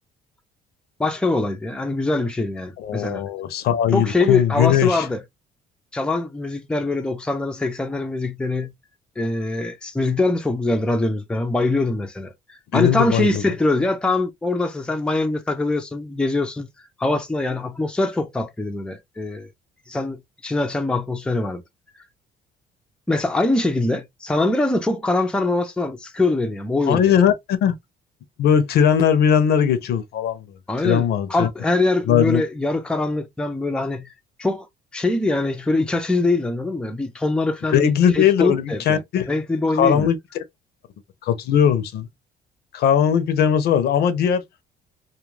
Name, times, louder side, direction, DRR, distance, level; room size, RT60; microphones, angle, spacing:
voice 1, 1.0-3.2 3.9-5.2 5.9-8.7 9.2-16.7 17.0-19.5 19.9-21.6 23.1-27.1 30.7-34.1 34.4-34.7 34.9-39.0 39.3-40.1, left 2 dB, 5° left, 0.5 m, -23 dB
voice 2, 2.8-5.1 12.7-13.5 26.9-27.7 28.4-30.5 30.8-31.5 32.1-32.4 37.7-39.3 39.7-40.2 41.2-42.1 42.7-44.4, left 8 dB, 70° left, 0.6 m, -19 dB
2.3 x 2.2 x 3.1 m
cardioid pair, 110°, 17 cm